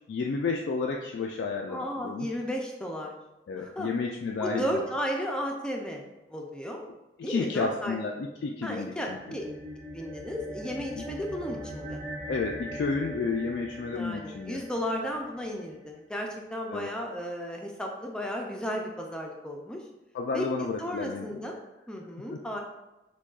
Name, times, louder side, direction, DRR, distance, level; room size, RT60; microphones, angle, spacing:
voice 1, 0.1-2.3 3.5-4.8 7.2-9.2 11.0-11.1 12.3-14.6 16.7-16.9 20.1-21.4 22.3-22.4, left 4 dB, 75° left, 0 dB, 0.3 m, -31 dB
voice 2, 1.7-3.2 3.5-3.9 4.4-6.8 7.2-8.0 8.6-9.5 9.9-12.0 13.9-19.8 20.3-20.4 20.8-21.6 21.9-22.6, equal, 5° left, 0 dB, 0.4 m, -34 dB
sound 1, 9.0-15.6, right 1 dB, 40° right, 1.0 m, -41 dB
6.1 x 2.3 x 2.3 m, 1.0 s
head